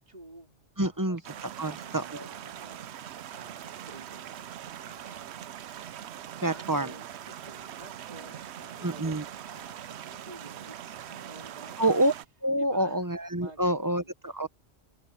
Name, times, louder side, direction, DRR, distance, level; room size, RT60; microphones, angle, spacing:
voice 1, 0.0-0.6 1.1-5.4 6.4-12.1 12.6-13.1 13.4-14.1, right 2 dB, 35° right, 3.4 m, -51 dB
voice 2, 0.8-2.3 6.4-6.9 8.8-9.2 11.8-12.1 12.4-14.5, right 1 dB, 20° right, 1.0 m, -27 dB
sound 1, 1.2-12.3, right 10 dB, 75° right, 0.9 m, -42 dB
omnidirectional pair, 1.1 m